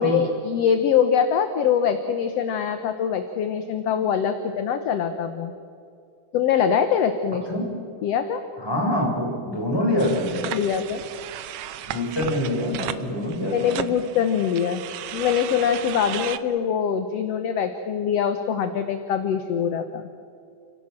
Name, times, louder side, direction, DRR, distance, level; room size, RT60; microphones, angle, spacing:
voice 1, 0.0-5.5 6.3-7.6 8.0-8.4 10.4-11.0 13.5-14.8 15.1-20.0, left 8 dB, 65° left, 8 dB, 1.7 m, -23 dB
voice 2, 8.6-10.5 11.9-13.9, left 1 dB, 5° left, -2 dB, 4.9 m, -25 dB
sound 1, 10.0-16.4, right 12 dB, 85° right, 1.3 m, -35 dB
29.5 x 17.0 x 7.5 m, 2.5 s
omnidirectional pair, 3.7 m